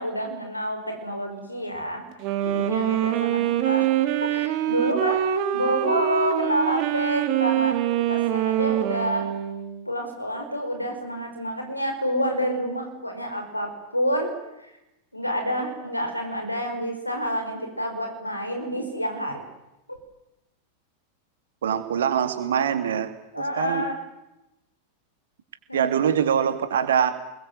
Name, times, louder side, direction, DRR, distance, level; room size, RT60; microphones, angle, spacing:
voice 1, 0.0-2.0 2.4-7.8 8.1-9.3 9.8-14.3 14.6-14.7 15.1-19.4 19.9-20.0 23.3-24.0 25.7-26.0, equal, 85° left, 4 dB, 5.1 m, -28 dB
Wind instrument woodwind instrument, 2.1-9.8, right 12 dB, 40° right, 2.5 m, -24 dB
voice 2, 21.6-23.1 23.6-23.8 25.7-27.1, right 8 dB, 65° right, 9 dB, 2.7 m, -23 dB
29.5 x 21.5 x 8.0 m, 0.91 s
figure-of-eight pair, 90°, 0 cm